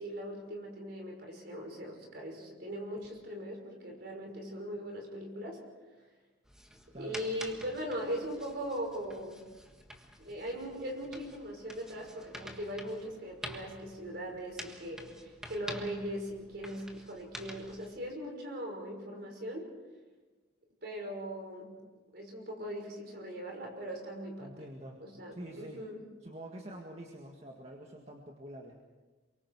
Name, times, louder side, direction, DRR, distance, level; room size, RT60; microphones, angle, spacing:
voice 1, 0.0-5.6 7.0-9.4 10.2-19.7 20.8-21.7 22.1-24.5 25.0-26.0, equal, 55° right, 1 dB, 5.7 m, -40 dB
sound 1, 6.5-17.9, equal, 5° right, 1.6 m, -49 dB
voice 2, 6.9-7.4 24.4-25.0 25.3-25.8 26.2-28.8, right 1 dB, 35° right, 0 dB, 1.9 m, -46 dB
27.5 x 24.0 x 4.8 m, 1.2 s
head